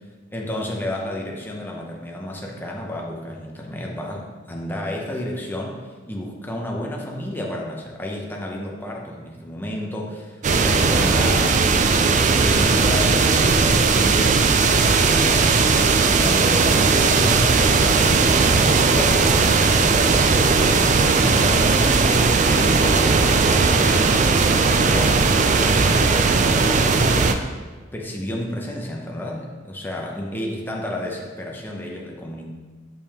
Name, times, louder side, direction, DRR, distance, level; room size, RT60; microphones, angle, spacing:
voice 1, 0.3-11.6 12.3-19.5 19.8-22.0 22.5-27.3 27.9-32.5, left 1 dB, 10° left, -1 dB, 0.7 m, -31 dB
sound 1, 10.4-27.3, right 4 dB, 40° right, 0.3 m, -17 dB
6.7 x 5.3 x 2.9 m, 1.4 s
head